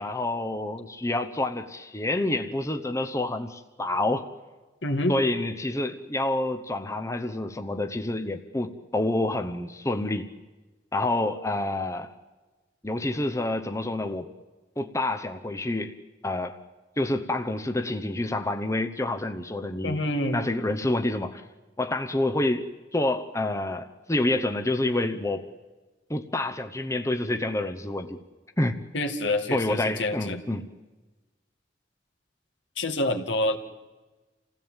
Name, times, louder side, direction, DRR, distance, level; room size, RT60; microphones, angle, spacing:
voice 1, 0.0-4.3 5.1-10.3 10.9-12.1 12.8-14.3 14.8-15.9 16.2-16.6 17.0-20.0 20.3-21.4 21.8-25.5 26.1-28.2 28.6-28.8 29.5-30.7, left 2 dB, 15° left, 7 dB, 0.9 m, -28 dB
voice 2, 4.8-5.2 19.8-20.4 28.9-30.4 32.8-33.6, left 1 dB, 75° left, 5 dB, 2.1 m, -27 dB
28.0 x 16.5 x 9.0 m, 1.2 s
head